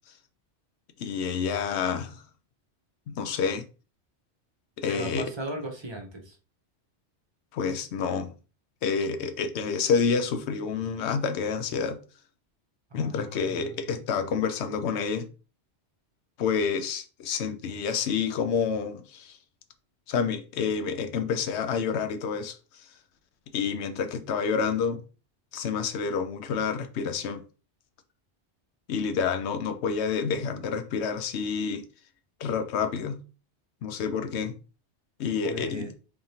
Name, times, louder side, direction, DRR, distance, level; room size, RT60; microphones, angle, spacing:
voice 1, 1.0-2.2 3.1-3.7 4.8-5.3 7.5-8.3 8.8-12.0 12.9-15.3 16.4-19.4 20.1-22.9 23.5-25.0 25.5-27.4 28.9-31.9 32.4-33.2 33.8-34.6 35.2-35.9, left 6 dB, 75° left, 0.9 m, -28 dB
voice 2, 4.9-6.4 13.0-13.7 35.4-35.9, right 1 dB, 30° right, 0.7 m, -37 dB
3.6 x 3.3 x 2.7 m
omnidirectional pair, 1.2 m